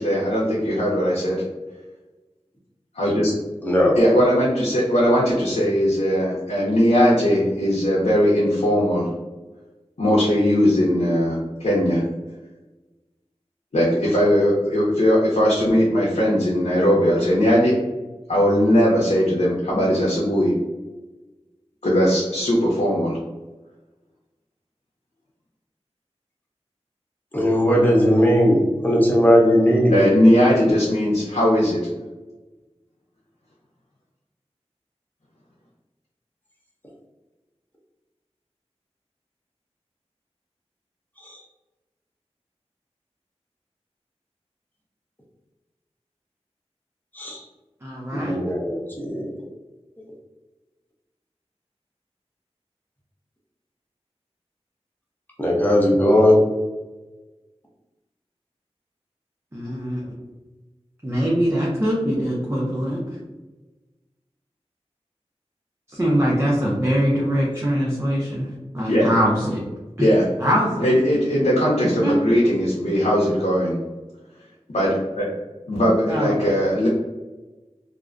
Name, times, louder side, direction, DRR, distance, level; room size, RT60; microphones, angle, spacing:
voice 1, 0.0-1.4 2.9-3.3 3.9-9.1 10.0-12.0 13.7-17.8 18.3-20.5 21.8-23.2 29.9-31.8 68.9-69.1 70.0-70.2 70.8-73.8 74.7-75.3 75.7-76.9, equal, 85° left, -6 dB, 0.6 m, -19 dB
voice 2, 3.6-3.9 27.3-30.0 47.2-47.4 48.1-49.3 55.4-56.4, equal, 15° left, -4 dB, 0.7 m, -18 dB
voice 3, 47.8-48.4 59.5-60.1 61.0-63.0 65.9-69.6 70.0-70.1 70.4-70.9 72.0-72.1 76.1-76.3, equal, 25° right, -5 dB, 0.5 m, -23 dB
2.4 x 2.1 x 2.4 m, 1.2 s
wide cardioid pair, 45°, 11 cm